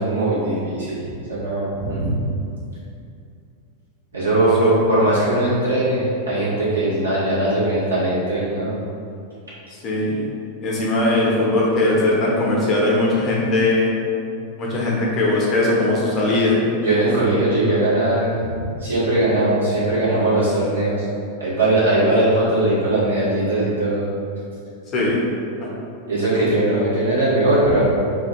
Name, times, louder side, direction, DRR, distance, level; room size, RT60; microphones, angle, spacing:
voice 1, 0.0-2.2 4.1-8.8 16.8-21.0 21.4-24.1 26.1-27.8, right 1 dB, 70° right, -9 dB, 1.3 m, -20 dB
voice 2, 9.7-10.2 10.6-13.9 14.6-16.6 24.9-25.2 25.6-25.7, left 2 dB, 30° left, -5 dB, 0.9 m, -19 dB
2.7 x 2.7 x 4.3 m, 2.5 s
figure-of-eight pair, 90°, 0 cm